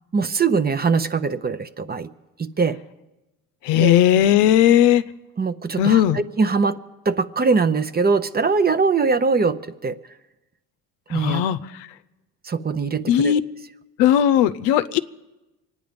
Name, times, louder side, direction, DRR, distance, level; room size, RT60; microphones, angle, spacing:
voice 1, 0.1-2.1 2.4-2.8 3.8-3.9 5.4-6.8 7.1-10.0 11.1-11.4 12.4-13.3, right 4 dB, 25° right, 13 dB, 0.7 m, -22 dB
voice 2, 3.6-5.0 5.8-6.2 11.1-11.9 13.1-13.4 14.0-15.0, left 11 dB, 80° left, 14 dB, 0.7 m, -17 dB
24.5 x 9.6 x 5.2 m, 1.0 s
supercardioid pair, 85°, 42 cm